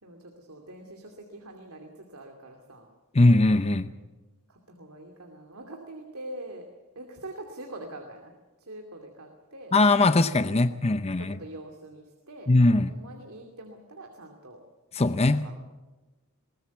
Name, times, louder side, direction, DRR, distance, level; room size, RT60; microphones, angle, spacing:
voice 1, 0.0-2.9 4.5-6.7 6.9-8.3 8.6-9.7 11.2-14.6 15.3-15.6, right 1 dB, 85° right, 2.6 m, -44 dB
voice 2, 3.1-3.9 9.7-11.4 12.5-12.9 14.9-15.5, left 2 dB, 30° left, 0.7 m, -21 dB
21.5 x 19.0 x 7.1 m
head